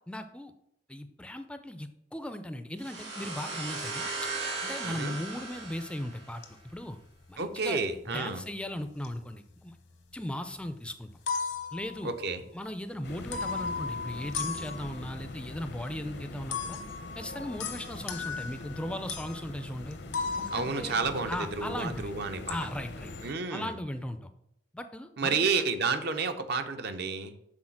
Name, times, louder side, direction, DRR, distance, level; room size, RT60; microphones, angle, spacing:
voice 1, 0.1-0.5 0.9-4.1 4.6-6.4 6.7-7.0 7.3-7.8 8.1-9.7 10.1-11.1 11.7-12.1 12.5-16.8 17.2-20.0 20.4-21.0 21.3-22.1 22.5-23.1 23.5-24.3 24.7-25.4, left 1 dB, 5° left, 9 dB, 0.4 m, -37 dB
sound 1, 2.8-6.5, right 3 dB, 85° right, 2.8 m, -37 dB
voice 2, 4.8-5.2 7.4-8.4 12.0-12.4 20.5-22.6 23.2-23.7 25.2-27.3, right 4 dB, 60° right, 8 dB, 0.6 m, -31 dB
sound 2, 4.9-5.0 5.5-5.9 6.4-7.0 7.2-7.8 8.8-9.2 9.5-10.3 10.7-10.8 11.0-12.6 13.3-15.2 16.5-21.7 22.0-22.7, left 5 dB, 85° left, 1.0 m, -37 dB
sound 3, 13.0-23.3, left 2 dB, 65° left, 0.7 m, -43 dB
6.4 x 4.0 x 5.8 m, 0.78 s
head